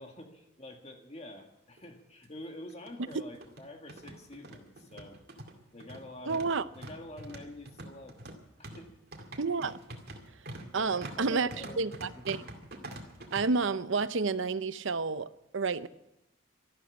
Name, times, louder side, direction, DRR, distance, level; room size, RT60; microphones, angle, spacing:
voice 1, 0.0-5.2 5.7-6.5 6.7-8.2 8.6-8.9 10.7-12.3, left 1 dB, 30° left, 2.0 m, -47 dB
sound 1, 1.4-1.5 1.8-1.9 2.7-13.4, right 1 dB, 50° right, 2.2 m, -46 dB
voice 2, 6.3-6.6 9.4-9.8 10.7-11.5 11.8-12.4 13.3-15.9, right 4 dB, 65° right, 0.7 m, -30 dB
13.0 x 12.5 x 8.6 m
head